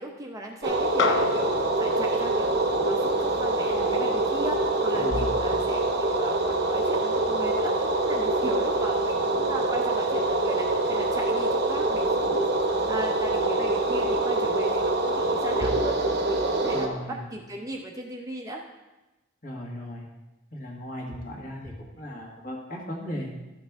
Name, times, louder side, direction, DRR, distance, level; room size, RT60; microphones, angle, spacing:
voice 1, 0.0-12.5 12.9-18.6, right 1 dB, 15° right, 1 dB, 0.6 m, -37 dB
sound 1, 0.6-16.9, right 2 dB, 55° right, 0.9 m, -25 dB
sound 2, 1.0-5.6, left 5 dB, 60° left, 0.5 m, -33 dB
voice 2, 4.9-5.5 16.7-17.2 19.4-20.0 20.5-23.3, equal, 40° left, -1 dB, 1.6 m, -37 dB
12.0 x 6.4 x 3.5 m, 1.1 s
head